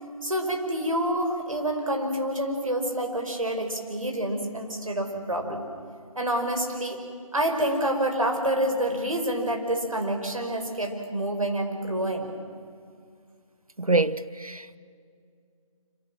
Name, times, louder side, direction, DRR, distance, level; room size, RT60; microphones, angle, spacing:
voice 1, 0.2-5.6 6.2-7.0 7.3-12.3, right 1 dB, 70° right, 5.4 m, -27 dB
voice 2, 13.8-14.8, right 2 dB, 90° right, 1.1 m, -25 dB
26.5 x 26.5 x 7.6 m
figure-of-eight pair, 155°, 18 cm